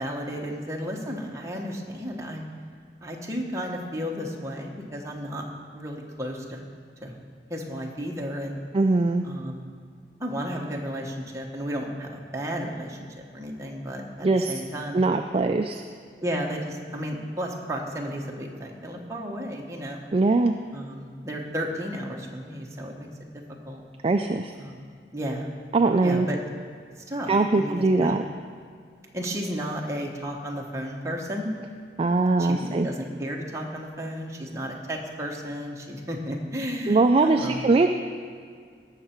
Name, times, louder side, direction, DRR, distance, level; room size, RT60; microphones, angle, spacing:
voice 1, 0.0-2.4 3.0-5.4 5.7-6.7 7.0-7.2 7.5-8.6 9.2-9.7 10.2-15.0 16.2-20.0 20.7-23.1 23.6-23.8 24.6-24.8 25.1-25.5 26.0-26.4 27.1-28.2 29.1-31.5 32.4-37.7, equal, 15° right, -1 dB, 1.2 m, -33 dB
voice 2, 8.7-9.3 14.2-14.5 14.9-15.8 20.1-20.5 24.0-24.5 25.7-26.3 27.3-28.2 32.0-32.9 36.9-37.9, right 3 dB, 35° right, 5 dB, 0.3 m, -21 dB
17.5 x 6.6 x 4.5 m, 2.1 s
head